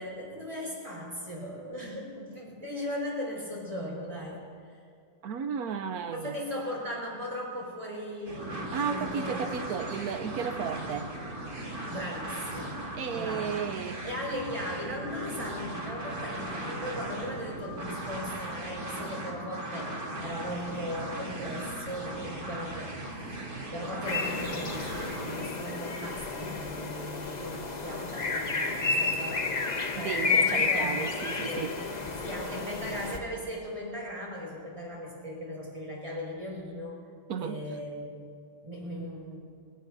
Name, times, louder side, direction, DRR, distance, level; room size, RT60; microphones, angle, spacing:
voice 1, 0.0-4.4 6.1-9.5 11.9-12.8 13.1-13.6 14.0-31.2 31.4-31.7 32.2-37.0 37.4-38.0 38.6-39.4, equal, 15° right, -3 dB, 4.9 m, -38 dB
voice 2, 5.2-6.3 8.7-11.1 12.9-14.0 29.9-31.8 37.3-37.6, right 7 dB, 65° right, 9 dB, 0.9 m, -34 dB
sound 1, 8.3-25.5, right 1 dB, 45° right, 3.5 m, -38 dB
sound 2, 24.1-33.2, left 4 dB, 40° left, 0.6 m, -31 dB
29.0 x 17.0 x 2.6 m, 2.2 s
omnidirectional pair, 2.2 m